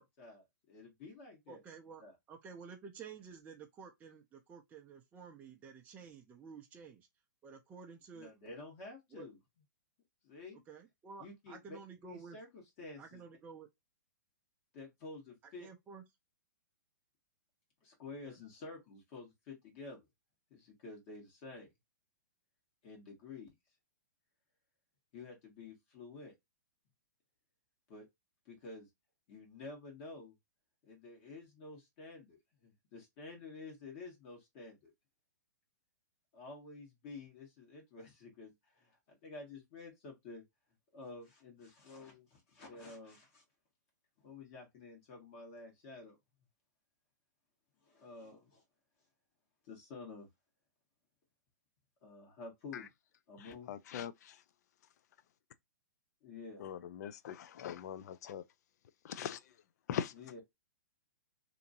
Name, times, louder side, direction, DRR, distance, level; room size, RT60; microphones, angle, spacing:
voice 1, 0.2-1.6 2.0-2.1 8.1-9.4 10.2-10.6 11.2-11.8 12.1-13.2 14.7-15.7 17.8-20.1 20.5-21.7 22.8-23.5 25.1-26.3 27.9-28.1 28.4-28.9 29.3-30.3 30.8-34.9 36.3-40.4 40.9-43.4 44.2-46.2 47.8-48.6 49.6-50.3 52.0-52.9 53.3-53.7 56.2-56.6 60.1-60.4, left 3 dB, 45° left, 1.4 m, -50 dB
voice 2, 1.5-2.0 2.3-7.1 7.4-8.3 9.1-9.3 10.7-12.4 13.0-13.7 15.6-16.0 18.2-18.4, right 6 dB, 15° right, 0.4 m, -52 dB
voice 3, 53.4-54.4 56.6-58.4 59.0-59.4 59.9-60.1, left 9 dB, 60° left, 0.4 m, -41 dB
2.8 x 2.6 x 2.6 m
hypercardioid pair, 135°, 10 cm